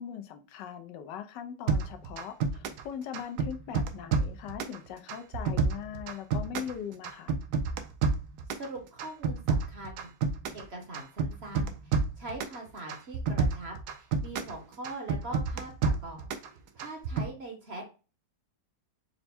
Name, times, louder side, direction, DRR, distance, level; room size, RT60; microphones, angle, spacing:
voice 1, 0.0-7.3, left 8 dB, 85° left, 1.3 m, -40 dB
sound 1, 1.7-2.9 3.1-4.8 5.1-6.8 7.0-8.7 9.0-10.7 10.9-12.6 12.9-14.5 14.8-16.5 16.8-17.3, right 4 dB, 75° right, 1.1 m, -29 dB
voice 2, 8.6-10.1 10.5-16.3 16.7-17.8, right 2 dB, 45° right, 0.9 m, -42 dB
4.4 x 2.1 x 4.2 m
omnidirectional pair, 1.9 m